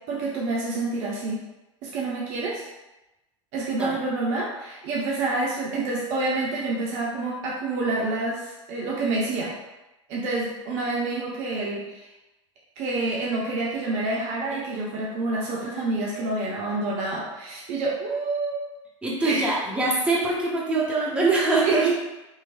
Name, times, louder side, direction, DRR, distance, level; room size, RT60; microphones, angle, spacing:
voice 1, 0.1-1.4 1.8-2.7 3.5-9.5 10.1-12.1 12.8-18.6 19.2-19.5 21.6-21.9, right 2 dB, 45° right, -4 dB, 0.6 m, -28 dB
voice 2, 19.0-21.9, right 3 dB, 5° right, -6 dB, 0.8 m, -23 dB
3.0 x 2.3 x 2.5 m, 1.0 s
figure-of-eight pair, 80°, 16 cm